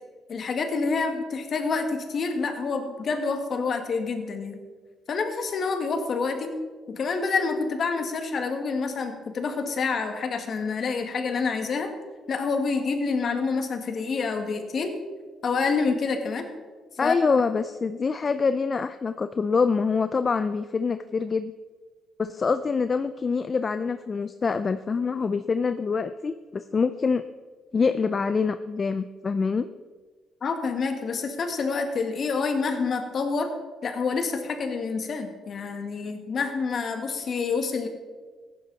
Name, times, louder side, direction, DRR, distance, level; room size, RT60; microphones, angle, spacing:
voice 1, 0.3-4.6 5.1-6.5 6.9-11.9 12.3-14.9 15.4-16.5 17.0-17.2 30.4-33.5 33.8-37.9, left 4 dB, 55° left, 6 dB, 1.8 m, -27 dB
voice 2, 17.0-21.5 22.2-27.2 27.7-29.7, left 5 dB, 35° left, 11 dB, 0.5 m, -25 dB
15.0 x 10.5 x 4.1 m, 1.4 s
cardioid pair, 90°, 0 cm